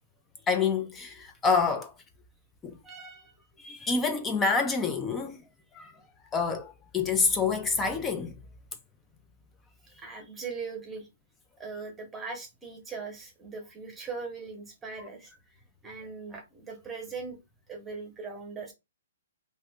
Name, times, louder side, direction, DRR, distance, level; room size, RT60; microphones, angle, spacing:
voice 1, 0.5-1.9 2.6-2.8 3.6-5.4 5.7-5.9 6.3-8.4, left 4 dB, 15° left, 0.4 m, -27 dB
voice 2, 2.8-3.3 9.9-11.1 11.6-15.6 15.8-17.4 17.7-18.7, right 4 dB, 10° right, 0.9 m, -40 dB
2.5 x 2.5 x 3.4 m
hypercardioid pair, 150°, 0 cm